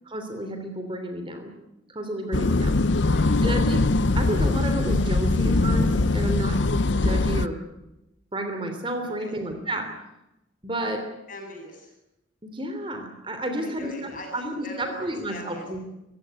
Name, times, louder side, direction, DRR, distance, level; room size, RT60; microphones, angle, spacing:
voice 1, 0.1-1.5 1.9-2.8 3.4-3.8 4.1-7.6 8.3-9.9 10.6-11.0 12.4-13.9 14.3-15.8, right 1 dB, 25° right, 6 dB, 3.2 m, -31 dB
sound 1, 2.3-7.5, left 2 dB, 60° left, 0.7 m, -22 dB
voice 2, 3.0-3.7 9.2-9.4 11.3-12.0 13.5-15.7, left 1 dB, 40° left, 3 dB, 7.3 m, -41 dB
25.5 x 16.0 x 9.3 m, 0.92 s
head